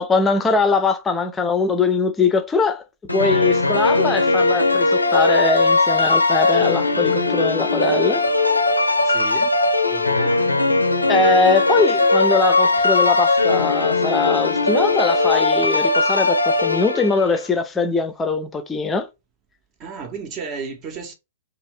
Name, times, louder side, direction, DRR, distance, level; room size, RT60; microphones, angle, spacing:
voice 1, 0.0-2.8 3.1-8.2 11.1-19.1, left 4 dB, 15° left, 0.5 m, -21 dB
sound 1, 3.1-17.4, left 3 dB, 90° left, 0.5 m, -19 dB
voice 2, 9.0-9.6 9.9-10.5 19.8-21.1, right 5 dB, 30° right, 0.8 m, -33 dB
2.7 x 2.5 x 3.2 m
figure-of-eight pair, 105°, 0 cm